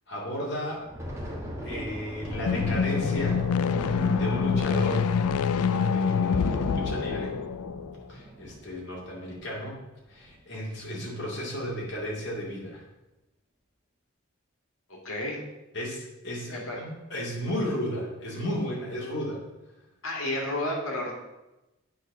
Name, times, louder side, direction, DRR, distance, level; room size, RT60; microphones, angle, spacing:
voice 1, 0.1-0.8 1.6-3.4 3.7-5.1 5.9-7.4 8.1-9.8 10.1-12.8 15.7-19.4, equal, 50° left, -4 dB, 2.3 m, -34 dB
Thunder, 0.8-9.8 10.1-10.3 10.7-11.0 11.6-12.1, right 1 dB, 15° right, 1.3 m, -37 dB
sound 1, 2.4-8.0, left 6 dB, 85° left, 0.4 m, -26 dB
voice 2, 15.0-15.4 16.5-16.8 20.0-21.1, left 1 dB, 70° left, -1 dB, 2.4 m, -31 dB
8.1 x 4.4 x 6.1 m, 1.0 s
head